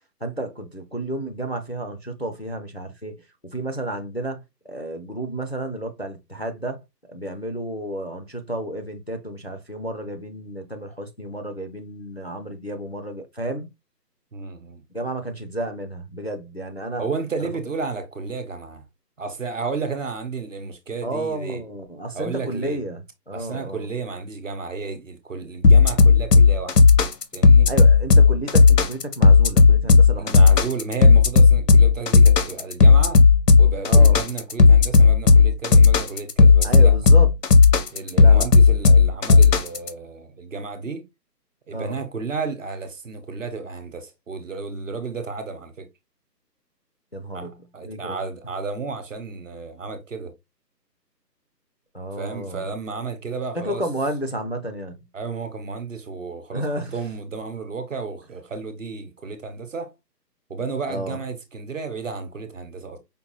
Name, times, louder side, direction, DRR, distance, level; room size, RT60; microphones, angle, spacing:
voice 1, 0.2-6.8 7.1-13.7 14.9-17.1 17.4-17.5 21.0-23.0 23.3-23.9 27.7-30.6 33.8-34.2 36.6-37.3 38.2-38.5 41.7-42.0 47.1-48.2 51.9-52.7 53.5-55.0 56.5-56.9 60.9-61.2, right 1 dB, 40° left, 0.5 m, -31 dB
voice 2, 14.3-14.8 17.0-18.8 19.2-21.6 22.1-22.8 23.3-26.8 27.3-27.7 30.2-33.2 33.6-36.9 37.9-41.0 41.7-45.9 47.3-50.3 52.2-53.8 55.1-56.6 56.9-59.9 60.5-63.0, right 4 dB, 50° right, 0.9 m, -32 dB
sound 1, 25.6-39.9, left 4 dB, 70° left, 0.9 m, -13 dB
5.1 x 2.1 x 3.0 m
hypercardioid pair, 175°, 50 cm